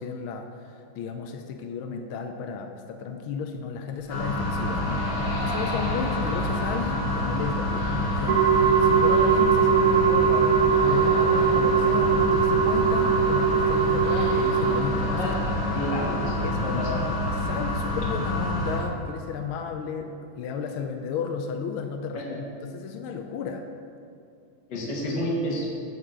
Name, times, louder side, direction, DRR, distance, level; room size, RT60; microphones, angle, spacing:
voice 1, 0.0-15.3 16.4-17.1 17.5-23.6, left 6 dB, 75° left, 5 dB, 1.4 m, -33 dB
sound 1, 3.7-17.3, left 1 dB, 40° left, 1.1 m, -40 dB
sound 2, 4.1-18.8, left 1 dB, 25° left, 1.6 m, -27 dB
sound 3, 8.3-14.8, right 7 dB, 70° right, 0.8 m, -21 dB
voice 2, 15.7-17.1 22.3-22.4 24.7-25.7, equal, 60° left, -3 dB, 1.9 m, -30 dB
6.6 x 6.2 x 7.3 m, 2.5 s
omnidirectional pair, 2.4 m